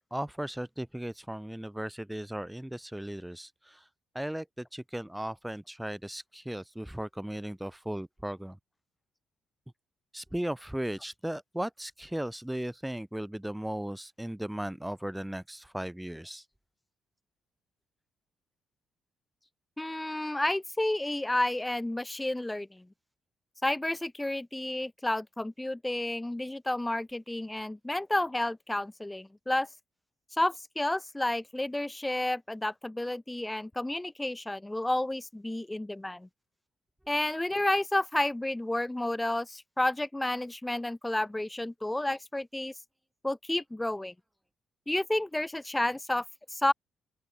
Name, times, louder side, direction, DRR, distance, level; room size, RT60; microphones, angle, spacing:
voice 1, 0.1-3.9 4.1-8.6 10.1-16.4, right 1 dB, 5° right, 2.4 m, -36 dB
voice 2, 19.8-22.9 23.6-29.7 30.3-36.3 37.1-42.7 43.2-44.1 44.9-46.2 46.5-46.7, left 1 dB, 10° left, 2.4 m, -31 dB
open air
cardioid pair, 90°, 0 cm